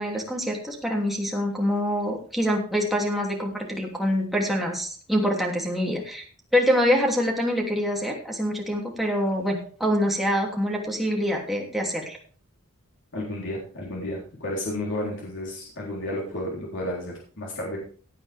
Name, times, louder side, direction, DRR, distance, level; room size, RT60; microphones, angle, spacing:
voice 1, 0.0-6.2 6.5-12.2, equal, ahead, -1 dB, 3.0 m, -25 dB
voice 2, 13.1-17.8, left 1 dB, 55° left, -3 dB, 3.9 m, -32 dB
17.5 x 8.8 x 3.6 m, 0.43 s
head